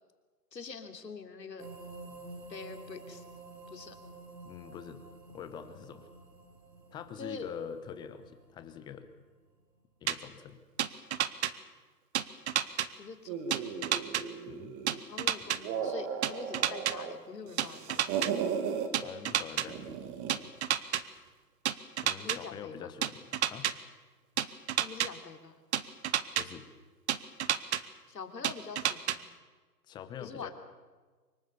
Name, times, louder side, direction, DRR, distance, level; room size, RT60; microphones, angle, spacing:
voice 1, 0.5-1.7 2.5-3.2 3.7-4.0 7.2-7.5 13.0-13.9 15.1-18.3 22.2-22.9 24.8-25.6 28.1-29.3 30.2-30.5, left 5 dB, 75° left, 6 dB, 3.4 m, -45 dB
sound 1, 1.6-9.3, right 2 dB, 75° right, 4.5 m, -50 dB
voice 2, 4.4-5.0 5.3-6.1 6.9-9.1 10.0-10.6 14.5-14.8 18.9-20.0 22.0-23.7 26.3-26.7 29.9-30.5, left 8 dB, 10° left, 10 dB, 0.9 m, -45 dB
sound 2, 10.1-10.2 10.8-11.5 12.1-12.9 13.5-14.2 14.9-15.6 16.2-16.9 17.6-18.3 18.9-19.7 20.3-21.0 21.7-22.4 23.0-23.7 24.4-25.1 25.7-26.4 27.1-27.8 28.4-29.2, right 10 dB, 40° right, 1.2 m, -29 dB
sound 3, 13.3-15.0 15.5-17.1 17.5-18.9 19.7-20.5, right 7 dB, 25° right, 2.1 m, -36 dB
25.0 x 22.5 x 7.0 m, 1.4 s
hypercardioid pair, 140°, 50 cm